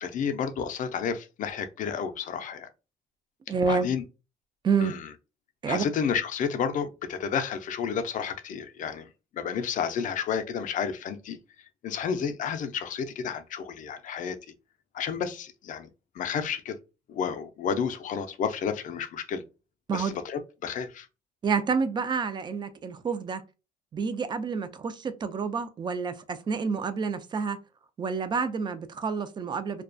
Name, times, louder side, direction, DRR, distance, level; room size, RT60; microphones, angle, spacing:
voice 1, 0.0-2.7 3.7-4.0 4.8-5.1 5.7-9.1 9.3-11.4 11.8-14.4 14.9-15.9 16.1-16.8 17.1-19.4 19.9-21.1, left 7 dB, 50° left, 0.4 m, -31 dB
voice 2, 3.5-3.9 4.6-4.9 5.6-5.8 19.9-20.2 21.4-23.4 23.9-27.6 28.0-29.8, right 5 dB, 25° right, 0.3 m, -28 dB
2.3 x 2.2 x 2.5 m
cardioid pair, 110°, 17 cm